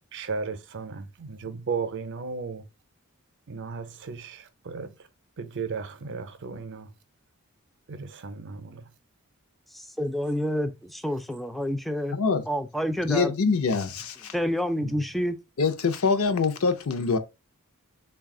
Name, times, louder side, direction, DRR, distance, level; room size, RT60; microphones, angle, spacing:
voice 1, 0.1-2.6 3.5-4.9 5.4-6.9 7.9-8.8 14.8-15.0, right 5 dB, 55° right, 0.5 m, -35 dB
voice 2, 9.7-12.2 12.5-13.3 14.3-15.4, equal, ahead, 0.3 m, -28 dB
voice 3, 13.1-14.3 15.6-17.2, left 4 dB, 70° left, 0.6 m, -24 dB
3.9 x 2.3 x 3.6 m
head